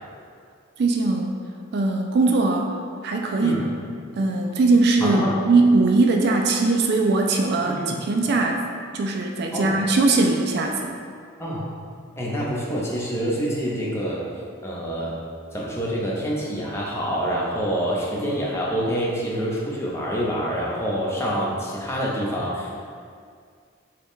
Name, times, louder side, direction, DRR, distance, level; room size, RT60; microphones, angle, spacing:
voice 1, 0.8-1.4 1.7-2.7 3.0-3.6 4.2-8.6 8.9-11.0, right 3 dB, 50° right, 2 dB, 0.3 m, -20 dB
voice 2, 5.0-5.4 7.6-8.0 9.5-9.8 11.4-11.7 12.2-14.2 14.6-15.2 15.5-22.8, equal, 15° left, -5 dB, 0.7 m, -26 dB
6.4 x 2.3 x 3.6 m, 2.2 s
head